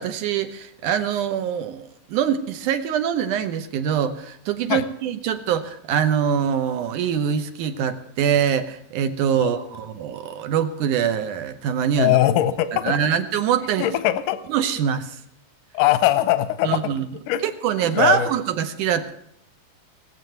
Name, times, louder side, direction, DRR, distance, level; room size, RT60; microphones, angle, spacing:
voice 1, 0.0-12.2 12.8-13.9 14.5-15.2 16.6-17.1 17.4-19.1, right 8 dB, 80° right, 8 dB, 2.4 m, -24 dB
voice 2, 12.0-12.9 13.8-14.4 15.7-16.8 17.3-17.5 17.9-18.3, left 13 dB, 85° left, 13 dB, 2.3 m, -20 dB
19.0 x 7.6 x 7.9 m, 0.73 s
omnidirectional pair, 3.7 m